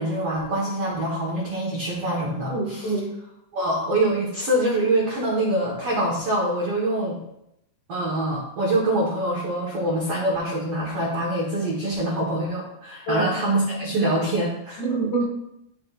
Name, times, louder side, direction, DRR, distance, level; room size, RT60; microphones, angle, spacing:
voice 1, 0.0-3.0 3.5-7.2 7.9-14.8, right 1 dB, 90° right, -4 dB, 1.2 m, -25 dB
voice 2, 2.5-3.1 13.1-13.3 14.8-15.3, right 3 dB, 70° left, -1 dB, 3.7 m, -25 dB
13.0 x 5.0 x 2.5 m, 0.81 s
omnidirectional pair, 5.0 m